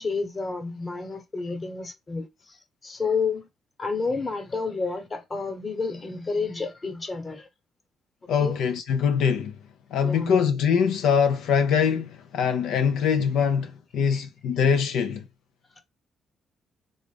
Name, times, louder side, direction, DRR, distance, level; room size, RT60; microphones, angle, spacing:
voice 1, 0.0-2.6 2.8-3.5 3.8-7.5 8.4-8.6 10.0-10.4 14.1-14.3, left 4 dB, 35° left, 1.1 m, -30 dB
voice 2, 8.3-9.5 9.9-15.2, left 7 dB, 85° left, 0.4 m, -23 dB
3.8 x 2.4 x 3.3 m
cardioid pair, 90°, 0 cm